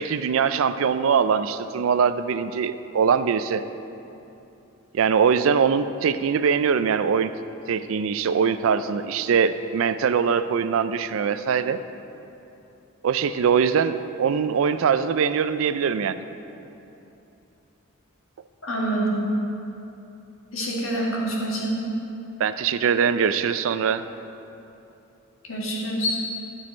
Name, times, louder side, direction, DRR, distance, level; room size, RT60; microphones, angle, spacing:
voice 1, 0.0-3.6 4.9-7.3 7.7-11.8 13.0-16.2 22.4-24.0, right 6 dB, 70° right, 12 dB, 0.4 m, -22 dB
voice 2, 18.6-19.2 20.5-21.8 25.4-26.2, right 1 dB, 65° left, -3 dB, 1.8 m, -26 dB
12.0 x 6.3 x 4.3 m, 2.9 s
head